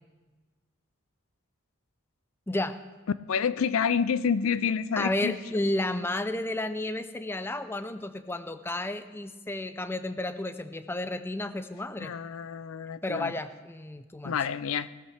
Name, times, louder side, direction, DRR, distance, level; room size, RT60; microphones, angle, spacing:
voice 1, 3.3-5.4 12.0-13.3 14.2-14.9, left 6 dB, 75° left, 16 dB, 0.4 m, -28 dB
voice 2, 5.0-12.1 13.0-14.3, left 1 dB, 10° left, 11 dB, 0.4 m, -32 dB
18.0 x 13.0 x 3.3 m, 1.3 s
head